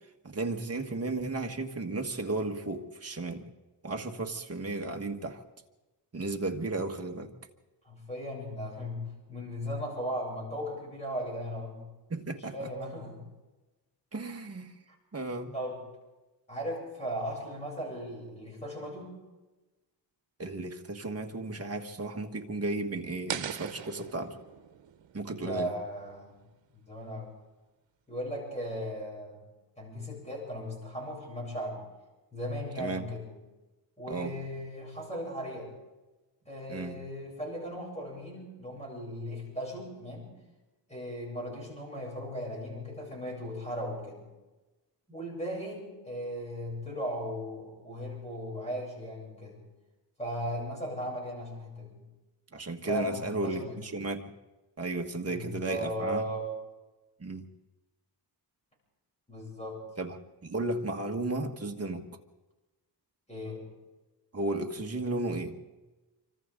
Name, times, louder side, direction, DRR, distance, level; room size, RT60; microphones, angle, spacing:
voice 1, 0.2-3.4 3.8-5.4 6.1-7.3 12.1-12.7 14.1-14.7 15.1-15.5 20.4-24.4 25.1-25.7 32.8-33.0 34.1-34.3 36.7-37.0 52.5-54.3 54.8-56.2 57.2-57.5 60.0-62.1 64.3-65.6, right 2 dB, 35° right, 3 dB, 1.6 m, -34 dB
voice 2, 7.8-11.8 12.5-13.2 14.9-15.0 15.5-15.8 16.5-19.2 25.4-26.4 26.7-27.3 28.1-29.4 29.8-31.8 32.3-33.3 34.0-35.7 36.5-40.3 40.9-44.2 45.1-49.6 50.2-52.0 52.9-53.8 55.3-56.5 59.3-59.8 63.3-63.7, equal, 15° left, -3 dB, 7.8 m, -37 dB
sound 1, 23.3-26.3, right 9 dB, 85° right, 1.0 m, -40 dB
27.0 x 25.0 x 3.8 m, 1.1 s
wide cardioid pair, 155°, 44 cm